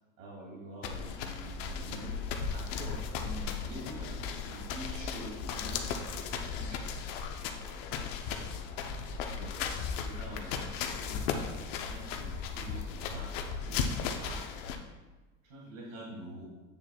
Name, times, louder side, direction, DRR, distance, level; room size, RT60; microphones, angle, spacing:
voice 1, 0.2-2.1 2.5-6.0 6.6-6.9 9.3-9.5 10.0-13.3 13.6-14.5 15.4-16.4, right 1 dB, 85° right, -3 dB, 2.0 m, -46 dB
sound 1, 0.8-14.8, left 6 dB, 70° left, 0.8 m, -36 dB
7.9 x 6.8 x 2.3 m, 1.2 s
hypercardioid pair, 90°, 38 cm